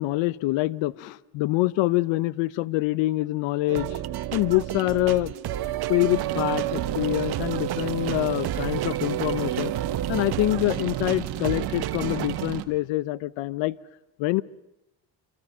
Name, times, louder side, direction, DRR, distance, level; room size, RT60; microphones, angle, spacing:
voice 1, 0.0-4.0 4.3-5.3 5.9-9.7 10.1-13.8 14.2-14.4, left 19 dB, 80° left, 0.9 m, -25 dB
sound 1, 3.7-12.5, right 12 dB, 55° right, 1.1 m, -31 dB
sound 2, 6.1-12.6, right 13 dB, 70° right, 1.7 m, -33 dB
27.5 x 26.5 x 5.6 m
supercardioid pair, 80°, 45 cm